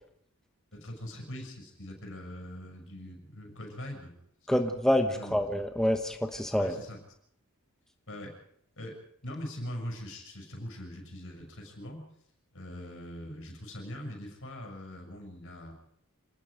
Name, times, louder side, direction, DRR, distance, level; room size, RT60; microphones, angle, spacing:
voice 1, 0.7-4.1 4.5-4.6 5.1-5.5 6.6-7.0 8.1-8.4 8.8-12.1 12.5-15.7, left 1 dB, 65° left, 2 dB, 6.8 m, -42 dB
voice 2, 4.5-6.7, equal, ahead, 4 dB, 1.2 m, -27 dB
27.0 x 19.5 x 5.1 m, 0.71 s
head